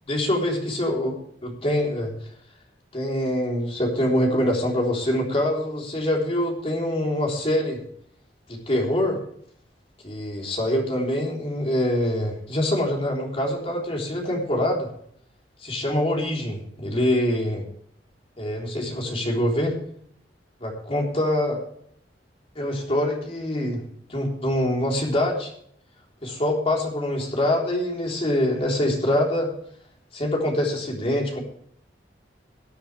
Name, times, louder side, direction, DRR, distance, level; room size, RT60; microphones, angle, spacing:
voice 1, 0.1-1.2 1.4-2.1 2.9-7.8 8.5-9.2 10.0-14.9 15.6-17.6 18.4-19.8 20.6-21.6 22.6-23.8 24.1-25.5 26.2-29.5 30.1-31.4, left 1 dB, 35° left, -1 dB, 3.8 m, -24 dB
18.5 x 10.0 x 3.4 m, 0.64 s
head